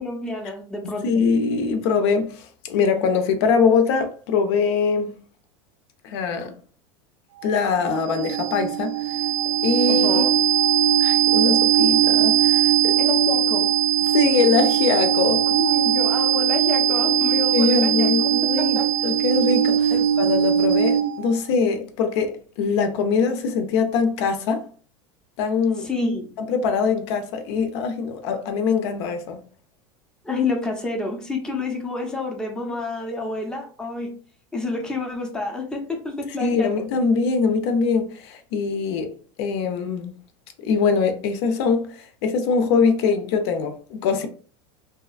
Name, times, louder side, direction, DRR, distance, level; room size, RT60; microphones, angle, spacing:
voice 1, 0.0-1.3 9.9-10.3 13.0-13.7 15.5-18.3 18.6-18.9 19.9-20.0 25.8-26.3 30.2-34.1 34.5-36.7, left 3 dB, 5° left, 0.5 m, -29 dB
voice 2, 0.8-5.2 6.0-6.5 7.4-9.3 9.6-10.2 11.0-13.0 14.1-15.4 17.5-24.7 25.4-25.9 26.4-29.4 36.4-39.1 39.4-40.1 40.6-44.3, left 5 dB, 70° left, 0.5 m, -22 dB
sound 1, 7.4-21.3, right 10 dB, 90° right, 0.4 m, -20 dB
2.7 x 2.3 x 2.3 m
supercardioid pair, 125°, 15 cm